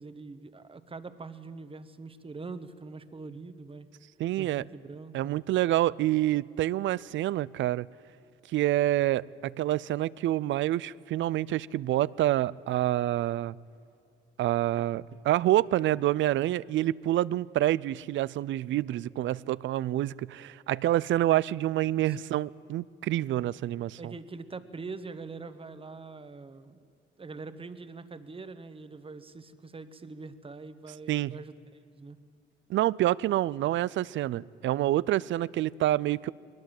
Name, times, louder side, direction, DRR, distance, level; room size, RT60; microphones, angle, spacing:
voice 1, 0.0-3.9 4.4-5.3 22.1-22.2 24.0-26.8 27.2-32.2, right 4 dB, 25° right, 12 dB, 1.2 m, -43 dB
voice 2, 4.2-4.6 5.1-7.9 8.5-13.6 14.4-24.1 31.1-31.3 32.7-36.3, right 14 dB, 70° right, 21 dB, 0.5 m, -27 dB
21.0 x 19.5 x 7.7 m, 2.5 s
cardioid pair, 90°, 20 cm